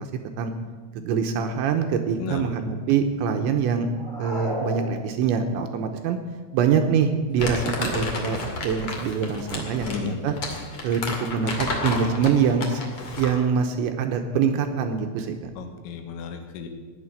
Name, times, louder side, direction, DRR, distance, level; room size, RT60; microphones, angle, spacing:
voice 1, 1.0-3.9 4.2-6.2 6.5-10.4 10.8-12.8 13.2-15.5, right 6 dB, 80° right, 6 dB, 2.9 m, -24 dB
voice 2, 2.2-2.5 9.8-10.2 15.6-16.7, left 6 dB, 80° left, 5 dB, 3.9 m, -33 dB
sound 1, 3.9-5.6, equal, 30° right, 0.5 m, -33 dB
Crumpling crinkling, 7.4-13.4, left 3 dB, 45° left, 2.0 m, -31 dB
18.5 x 6.7 x 9.8 m, 1.5 s
omnidirectional pair, 5.8 m